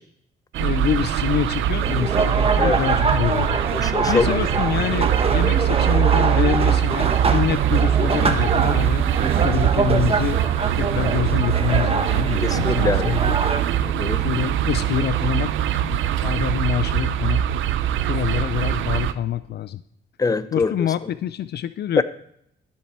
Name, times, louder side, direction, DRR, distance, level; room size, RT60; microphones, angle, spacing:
sound 1, 0.5-19.1, right 11 dB, 80° right, 0.6 m, -22 dB
voice 1, 0.6-3.6 4.1-9.0 9.4-13.4 14.2-15.5 15.8-17.4 18.0-19.8 20.5-22.0, left 10 dB, 55° left, 14 dB, 0.4 m, -26 dB
sound 2, 1.8-13.6, right 4 dB, 30° right, 1.2 m, -25 dB
voice 2, 3.7-4.4 12.4-13.2 13.8-14.2 20.2-20.7 22.0-22.1, left 4 dB, 20° left, 13 dB, 0.7 m, -23 dB
13.5 x 7.5 x 4.4 m, 0.70 s
cardioid pair, 90°, 20 cm